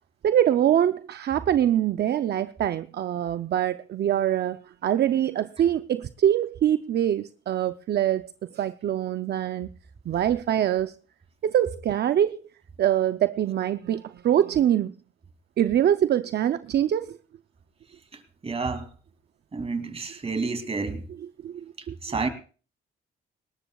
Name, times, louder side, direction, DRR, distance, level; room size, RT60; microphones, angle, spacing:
voice 1, 0.2-8.3 8.5-9.7 10.1-10.9 11.4-12.4 12.8-14.9 15.6-17.2 21.2-22.0, right 10 dB, 55° right, 0.6 m, -24 dB
voice 2, 18.4-18.9 19.5-21.0 22.0-22.3, right 4 dB, 30° right, 2.7 m, -29 dB
20.0 x 18.0 x 2.3 m
cardioid pair, 90°, 20 cm